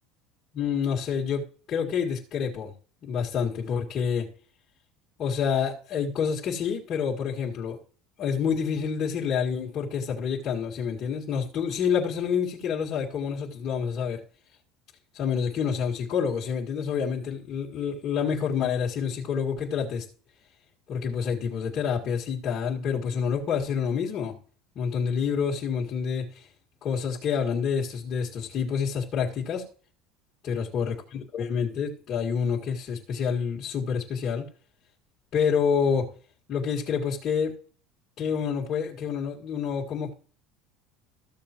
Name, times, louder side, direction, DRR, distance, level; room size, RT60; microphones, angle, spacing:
voice 1, 0.5-2.7 3.0-4.3 5.2-7.8 8.2-14.2 15.1-20.1 20.9-24.4 24.8-26.5 26.8-29.7 30.4-34.5 35.3-36.1 36.5-37.6 38.2-40.1, left 6 dB, 40° left, -5 dB, 2.0 m, -28 dB
14.5 x 7.1 x 3.0 m, 0.42 s
supercardioid pair, 135°, 0 cm